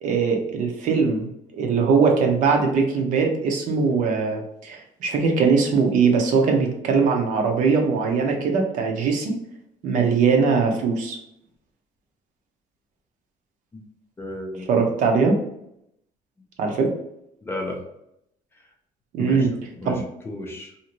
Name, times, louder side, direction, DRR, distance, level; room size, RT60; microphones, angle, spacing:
voice 1, 0.0-9.4 9.8-11.2 14.7-15.4 16.6-16.9 19.1-19.5 19.8-20.0, right 5 dB, 60° right, 2 dB, 0.7 m, -21 dB
voice 2, 14.2-14.8 17.4-17.8 19.2-19.5 19.8-20.7, left 2 dB, 15° left, 1 dB, 0.5 m, -33 dB
2.8 x 2.5 x 2.9 m, 0.78 s
cardioid pair, 160°, 15 cm